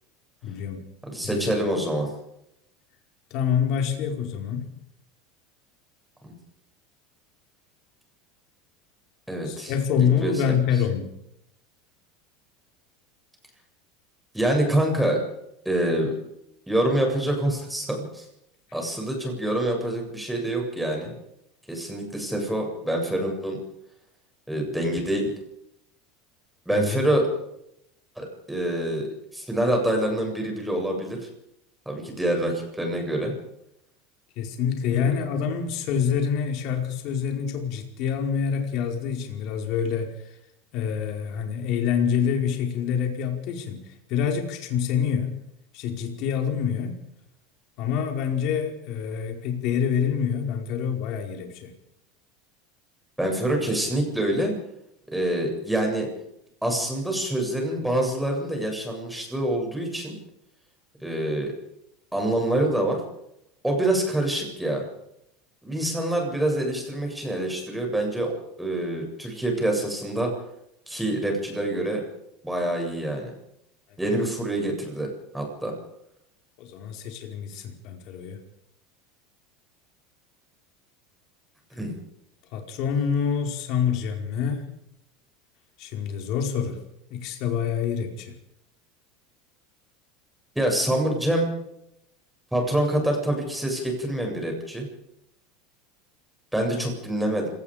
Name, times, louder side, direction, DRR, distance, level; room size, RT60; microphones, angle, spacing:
voice 1, 0.4-0.8 1.2-1.6 3.3-4.7 9.4-11.1 26.7-27.0 34.4-40.1 40.7-43.8 44.1-45.4 45.7-47.0 47.8-51.7 76.6-78.4 82.5-84.7 85.8-86.8 87.1-88.3, left 7 dB, 55° left, 3 dB, 4.8 m, -26 dB
voice 2, 1.1-2.1 6.2-6.4 9.3-9.7 10.0-10.3 14.3-15.2 15.6-16.1 16.7-18.2 18.7-21.1 21.7-23.6 24.5-25.3 26.7-27.3 28.2-29.1 29.3-31.2 31.9-33.3 35.0-35.1 53.2-54.6 55.1-56.1 56.6-60.2 61.0-61.5 62.1-63.0 63.6-64.8 65.6-68.3 68.6-70.3 70.9-72.0 72.4-73.3 74.0-75.7 81.7-81.9 90.5-91.5 92.5-94.9 96.5-97.5, right 1 dB, 5° right, 1 dB, 7.7 m, -26 dB
27.5 x 18.5 x 5.2 m, 0.79 s
supercardioid pair, 125°, 0 cm